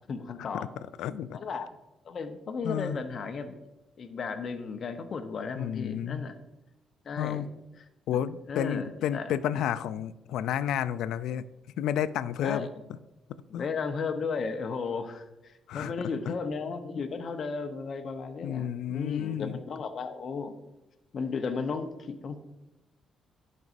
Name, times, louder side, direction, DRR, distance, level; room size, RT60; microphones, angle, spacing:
voice 1, 0.1-0.7 1.3-1.7 2.1-3.6 4.0-6.4 7.0-7.5 8.5-9.3 12.4-12.7 13.5-20.6 21.1-22.4, left 5 dB, 50° left, 7 dB, 0.8 m, -34 dB
voice 2, 1.0-1.4 2.6-3.0 5.6-6.3 7.2-7.5 8.1-11.4 11.8-12.7 13.5-13.7 15.7-16.3 18.4-19.6, left 10 dB, 85° left, 15 dB, 0.3 m, -31 dB
11.0 x 5.3 x 2.6 m, 0.97 s
cardioid pair, 90°, 0 cm